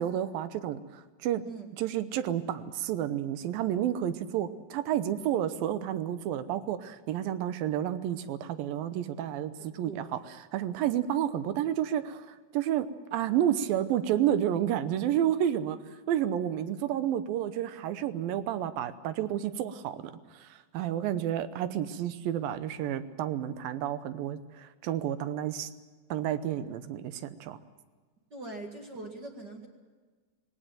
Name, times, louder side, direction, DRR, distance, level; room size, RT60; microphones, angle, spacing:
voice 1, 0.0-1.4 1.8-15.8 16.1-25.7 26.1-27.6, right 10 dB, 75° right, 12 dB, 2.6 m, -30 dB
voice 2, 9.8-10.2 10.9-11.1 28.3-29.7, right 2 dB, 35° right, 2 dB, 2.0 m, -42 dB
19.5 x 18.0 x 9.0 m, 1.4 s
omnidirectional pair, 4.3 m